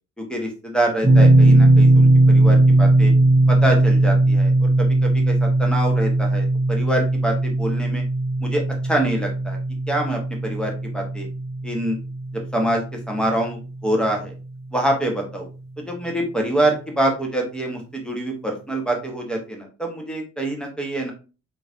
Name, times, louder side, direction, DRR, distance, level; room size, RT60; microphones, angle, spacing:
voice 1, 0.2-3.1 3.5-8.0 8.4-9.6 9.9-11.3 11.6-12.0 12.5-14.3 14.7-15.5 15.8-21.1, right 1 dB, ahead, 1 dB, 1.4 m, -25 dB
sound 1, 1.0-13.9, right 2 dB, 15° right, 1.4 m, -18 dB
4.1 x 3.0 x 2.8 m, 0.33 s
figure-of-eight pair, 45°, 37 cm